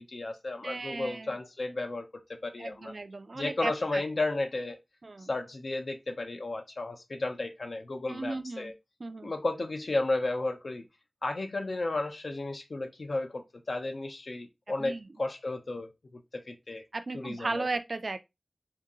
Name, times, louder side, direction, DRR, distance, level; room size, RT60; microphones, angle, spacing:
voice 1, 0.0-2.1 2.4-2.9 3.3-4.8 5.3-8.7 9.2-10.8 11.2-16.8 17.1-17.7, left 2 dB, 85° left, 0.7 m, -33 dB
voice 2, 0.6-1.4 2.6-4.0 5.0-5.3 8.1-8.7 9.0-9.3 14.8-15.1 16.9-18.2, right 3 dB, 75° right, 0.4 m, -35 dB
2.9 x 2.8 x 3.7 m
wide cardioid pair, 65°, 0 cm